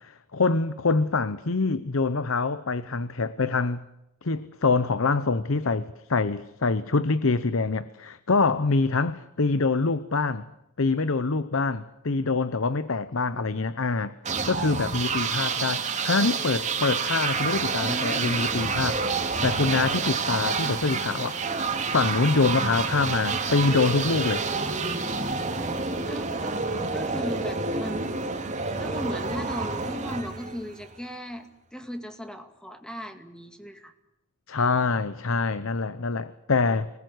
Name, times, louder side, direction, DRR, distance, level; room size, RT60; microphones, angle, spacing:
voice 1, 0.0-3.8 4.2-10.5 10.8-14.1 14.5-21.4 21.9-24.4 34.5-36.9, left 3 dB, 65° left, 14 dB, 0.9 m, -25 dB
sound 1, 14.2-31.0, right 4 dB, 35° right, 3.0 m, -28 dB
voice 2, 26.1-26.6 26.9-28.0 28.8-33.9 36.7-36.8, equal, 5° left, 7 dB, 2.2 m, -37 dB
26.0 x 19.5 x 8.0 m, 0.89 s
head